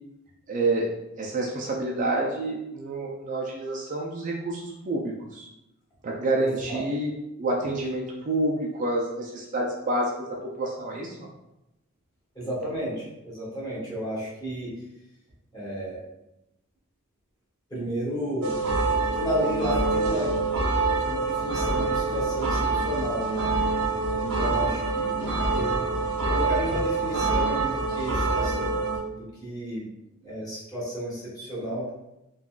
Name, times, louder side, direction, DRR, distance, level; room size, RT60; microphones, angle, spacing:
voice 1, 0.5-5.5 6.0-11.3, right 2 dB, 35° right, -2 dB, 0.3 m, -28 dB
voice 2, 6.4-6.8 12.3-14.7 15.5-16.0 17.7-18.5 19.0-20.4 21.0-23.5 24.1-25.1 25.5-25.9 26.3-28.8 29.4-29.9 30.2-31.9, equal, 15° left, -8 dB, 1.1 m, -32 dB
sound 1, 18.4-29.0, right 3 dB, 85° right, 0.7 m, -26 dB
3.6 x 2.3 x 2.3 m, 0.91 s
head